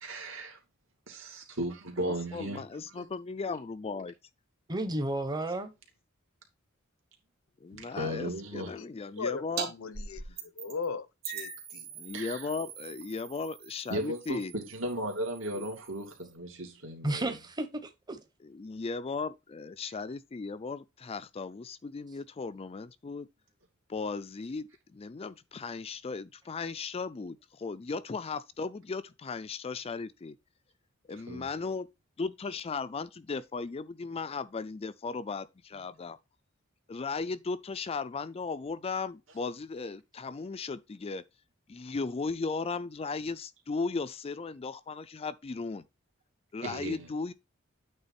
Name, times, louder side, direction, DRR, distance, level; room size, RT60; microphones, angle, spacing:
voice 1, 0.0-0.6 1.1-2.6 3.0-3.1 7.7-8.7 12.1-12.5 13.9-17.3 31.3-31.5 46.6-47.1, right 1 dB, 70° right, 2.5 m, -36 dB
voice 2, 2.0-4.1 7.6-9.7 12.0-14.5 15.6-15.7 18.4-23.3 23.9-30.4 31.1-31.9 32.2-36.2 36.9-41.2 41.7-45.8 46.5-47.3, left 4 dB, 30° left, 0.4 m, -36 dB
voice 3, 4.7-5.7 17.0-18.2, right 1 dB, 20° right, 0.9 m, -32 dB
sound 1, 9.6-9.7 9.9-10.9 11.2-16.3, right 5 dB, 50° right, 2.0 m, -42 dB
voice 4, 9.7-10.2 10.6-11.9, left 5 dB, 85° left, 0.8 m, -37 dB
8.8 x 3.6 x 4.2 m
head